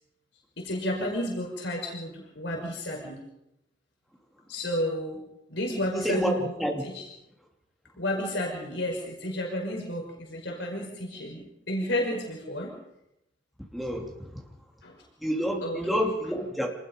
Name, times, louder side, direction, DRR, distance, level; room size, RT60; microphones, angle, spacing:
voice 1, 0.6-3.2 4.5-5.2 5.5-6.5 6.8-6.9 8.0-12.7 14.8-15.0 15.6-15.8, left 1 dB, 80° left, 0 dB, 5.2 m, -31 dB
voice 2, 6.0-6.8 13.7-14.4 15.2-16.8, equal, ahead, 0 dB, 3.0 m, -29 dB
26.5 x 20.0 x 5.3 m, 0.85 s
head